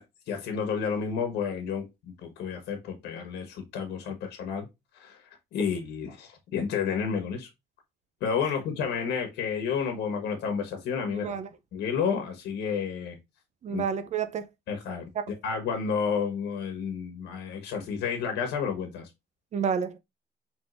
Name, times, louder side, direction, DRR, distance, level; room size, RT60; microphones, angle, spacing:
voice 1, 0.0-4.7 4.9-5.2 5.5-7.5 8.2-11.3 11.7-13.2 13.7-13.8 14.7-15.1 15.4-19.1, left 6 dB, 80° left, 1.3 m, -31 dB
voice 2, 11.1-11.5 13.6-14.5 19.5-20.0, right 7 dB, 45° right, 0.6 m, -30 dB
4.9 x 3.6 x 2.5 m
cardioid pair, 110°, 17 cm